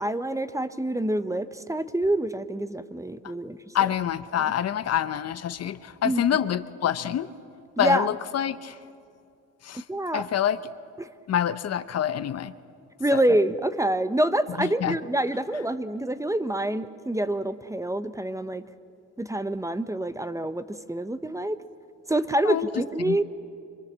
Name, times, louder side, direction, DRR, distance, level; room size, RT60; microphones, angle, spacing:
voice 1, 0.0-3.6 6.0-6.2 7.8-8.1 9.7-10.2 11.0-11.1 13.0-18.6 19.2-21.6 22.1-23.2, right 1 dB, 10° right, 12 dB, 0.8 m, -26 dB
voice 2, 3.7-7.3 7.8-8.8 9.6-9.8 10.1-10.6 11.3-12.5 13.1-13.2 14.6-14.9 22.4-22.7 23.0-23.2, left 10 dB, 55° left, 13 dB, 0.8 m, -26 dB
26.0 x 23.0 x 7.4 m, 2.5 s
cardioid pair, 90°, 30 cm